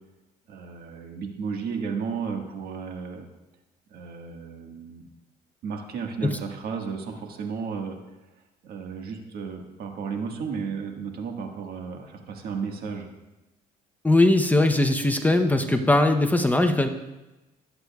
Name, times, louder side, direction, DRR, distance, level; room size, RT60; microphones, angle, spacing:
voice 1, 0.5-3.3 3.9-5.0 5.6-8.0 8.6-13.1, right 5 dB, 65° right, 2 dB, 1.7 m, -33 dB
voice 2, 14.0-16.9, left 2 dB, 10° left, 6 dB, 0.7 m, -20 dB
20.5 x 8.0 x 2.4 m, 1.0 s
cardioid pair, 110°, 17 cm